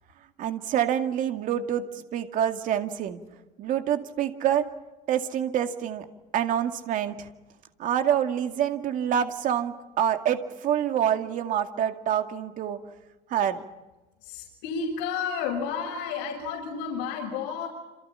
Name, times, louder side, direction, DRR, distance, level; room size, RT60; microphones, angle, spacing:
voice 1, 0.4-3.2 3.6-4.7 5.1-6.1 6.3-7.3 7.8-12.8 13.3-13.6, right 9 dB, 50° right, 7 dB, 2.2 m, -26 dB
voice 2, 14.2-17.7, left 6 dB, 80° left, -2 dB, 6.6 m, -31 dB
28.0 x 28.0 x 5.7 m, 1.1 s
cardioid pair, 155°, 18 cm